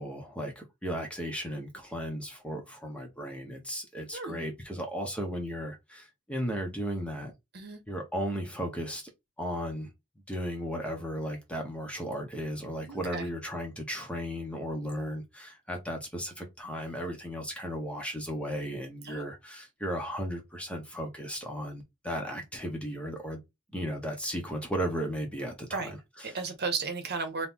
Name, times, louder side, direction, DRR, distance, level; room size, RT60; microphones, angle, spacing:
voice 1, 0.0-7.3 7.9-9.0 9.4-9.9 10.3-23.4 23.7-26.4, equal, 5° left, 1.0 m, -35 dB
voice 2, 12.9-13.3 19.1-19.2 25.7-25.9 26.2-27.5, right 4 dB, 50° right, 1.1 m, -34 dB
3.3 x 2.9 x 3.6 m
head